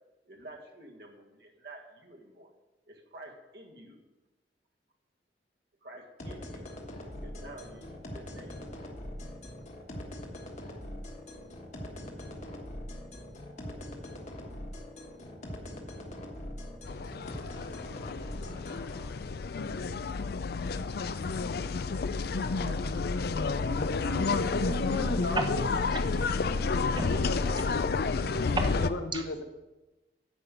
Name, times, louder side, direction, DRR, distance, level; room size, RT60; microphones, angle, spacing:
voice 1, 0.3-2.5 2.9-4.0 5.8-6.7 7.2-8.6 22.5-23.8, right 2 dB, 60° right, 1 dB, 1.8 m, -50 dB
sound 1, 6.2-19.1, left 1 dB, 40° left, 1.4 m, -42 dB
sound 2, 16.9-28.9, left 4 dB, 60° left, 0.4 m, -30 dB
voice 2, 23.9-25.6 27.0-27.7 28.7-29.4, left 2 dB, 75° left, 6 dB, 1.0 m, -34 dB
voice 3, 26.1-27.3 28.3-28.8 29.1-29.2, right 2 dB, 25° right, 5 dB, 0.9 m, -35 dB
10.0 x 5.3 x 7.7 m, 1.1 s
head